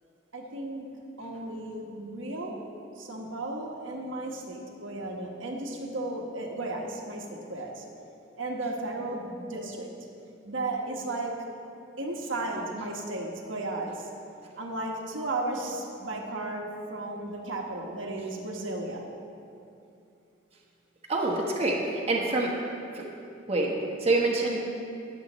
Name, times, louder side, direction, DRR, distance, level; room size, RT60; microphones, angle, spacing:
voice 1, 0.3-2.7 3.0-7.8 8.4-9.9 10.4-11.5 12.0-14.1 14.6-19.1, right 2 dB, 85° right, -1 dB, 1.4 m, -34 dB
voice 2, 21.1-21.8 22.1-22.5 22.9-23.1 23.5-23.7 24.0-24.7, right 2 dB, 30° right, -2 dB, 1.2 m, -26 dB
19.5 x 7.4 x 3.1 m, 2.6 s
head